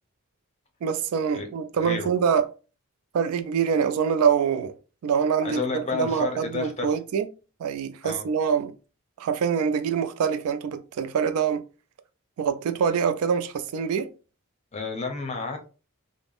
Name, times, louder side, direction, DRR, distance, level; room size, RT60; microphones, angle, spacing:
voice 1, 0.8-2.5 3.1-4.8 5.0-7.3 7.6-8.7 9.2-11.6 12.4-14.1, right 7 dB, 90° right, 0.3 m, -25 dB
voice 2, 1.7-2.1 5.4-7.0 8.0-8.3 14.7-15.7, left 4 dB, 30° left, 0.6 m, -31 dB
3.4 x 2.0 x 2.4 m
head